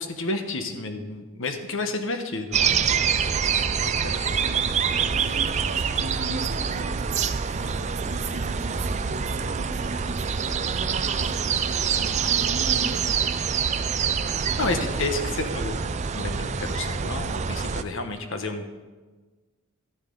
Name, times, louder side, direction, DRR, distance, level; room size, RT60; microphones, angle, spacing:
voice 1, 0.0-3.0 4.0-4.4 14.6-15.8 16.1-18.7, left 2 dB, 60° left, 6 dB, 1.1 m, -31 dB
sound 1, 2.5-17.8, right 6 dB, 30° right, 0.4 m, -26 dB
voice 2, 4.3-4.7 5.1-13.4, right 1 dB, 60° right, 0 dB, 1.8 m, -39 dB
13.5 x 13.5 x 3.9 m, 1.3 s
head